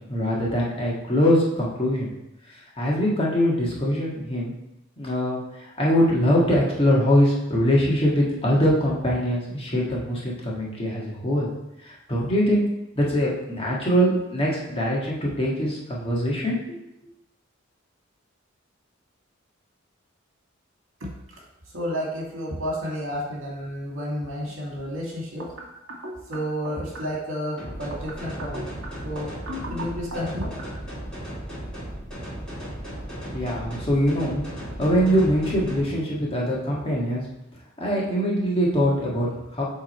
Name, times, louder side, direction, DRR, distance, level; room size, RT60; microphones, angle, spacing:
voice 1, 0.1-2.1 2.8-4.5 5.0-5.4 5.8-11.5 11.8-12.7 12.9-16.8 33.3-34.5 34.8-37.2 37.8-39.6, equal, 30° left, -5 dB, 1.6 m, -23 dB
voice 2, 21.0-21.4 21.7-28.7 29.0-30.5, equal, 70° right, -3 dB, 2.0 m, -31 dB
sound 1, 27.6-35.8, equal, 5° left, 2.5 m, -36 dB
7.9 x 3.7 x 4.4 m, 0.87 s
head